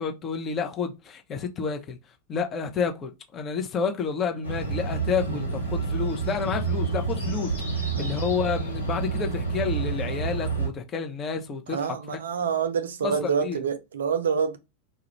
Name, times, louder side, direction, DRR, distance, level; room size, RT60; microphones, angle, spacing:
voice 1, 0.0-2.0 2.3-12.2 13.0-13.6, left 6 dB, 25° left, 0.6 m, -30 dB
sound 1, 4.4-10.7, right 4 dB, 85° left, 0.8 m, -29 dB
voice 2, 11.7-14.6, right 6 dB, 65° right, 0.4 m, -27 dB
2.3 x 2.1 x 3.0 m
figure-of-eight pair, 90°, 0 cm